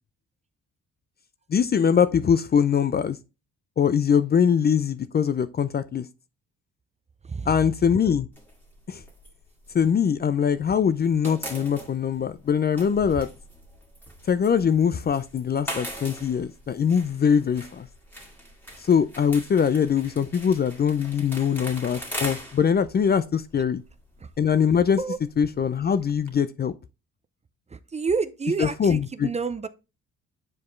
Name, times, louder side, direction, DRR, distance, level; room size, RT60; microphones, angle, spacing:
voice 1, 1.5-3.2 3.8-6.0 7.5-8.3 8.9-9.0 9.7-13.3 14.3-17.9 18.8-23.8 24.4-25.0 25.4-26.7 28.6-29.3, left 7 dB, 35° left, 0.4 m, -22 dB
sound 1, 8.3-10.6 10.9-26.3, equal, 5° left, 2.0 m, -41 dB
voice 2, 27.7-29.7, right 4 dB, 20° right, 0.5 m, -29 dB
7.5 x 4.6 x 3.1 m
cardioid pair, 90°, 30 cm